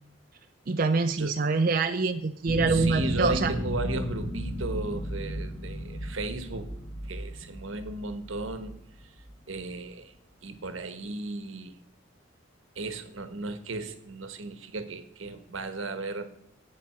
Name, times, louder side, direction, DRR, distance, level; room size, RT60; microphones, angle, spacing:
voice 1, 0.7-3.5, right 4 dB, 45° right, 7 dB, 0.5 m, -25 dB
sound 1, 2.5-9.6, equal, 20° left, 1.6 m, -34 dB
voice 2, 2.7-10.1 10.4-11.8 12.7-16.3, right 2 dB, 85° right, 10 dB, 1.2 m, -35 dB
8.3 x 7.4 x 5.9 m, 0.75 s
head